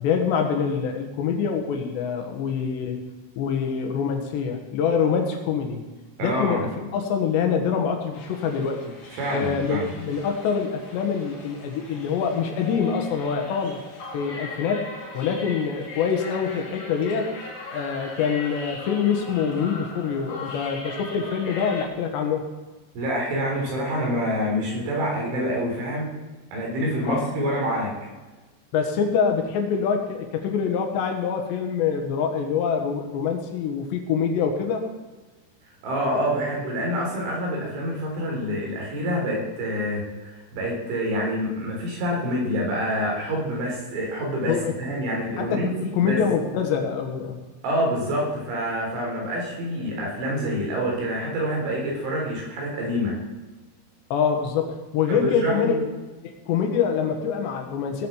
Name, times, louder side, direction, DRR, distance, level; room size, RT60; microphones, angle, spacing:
voice 1, 0.0-3.0 3.4-5.8 6.2-8.9 9.3-13.8 14.1-14.9 15.1-17.3 17.7-22.4 27.0-27.2 28.7-34.9 44.5-44.7 45.4-47.4 54.1-55.8 56.2-58.1, left 6 dB, 70° left, 4 dB, 3.6 m, -25 dB
voice 2, 6.2-6.6 9.2-9.9 22.9-26.1 26.5-27.9 35.8-46.2 47.6-53.2 55.1-55.8, equal, 85° right, -1 dB, 6.3 m, -27 dB
sound 1, 8.1-21.9, left 2 dB, 50° left, 4.3 m, -39 dB
17.5 x 7.7 x 7.3 m, 1.2 s
omnidirectional pair, 5.3 m